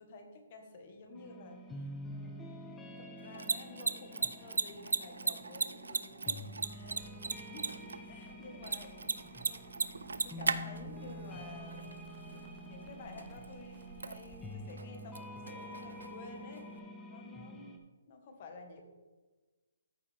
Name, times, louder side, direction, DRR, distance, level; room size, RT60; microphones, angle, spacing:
voice 1, 0.0-2.6 3.0-9.1 9.5-12.0 12.3-18.8, left 3 dB, 45° left, 4 dB, 1.5 m, -52 dB
sound 1, 1.1-17.8, left 1 dB, 10° left, 0.8 m, -48 dB
Mechanisms, 3.2-16.8, right 4 dB, 85° right, 0.5 m, -39 dB
Crackle, 6.6-14.4, equal, 15° right, 1.2 m, -59 dB
13.5 x 4.8 x 3.5 m, 1.2 s
hypercardioid pair, 150°, 0 cm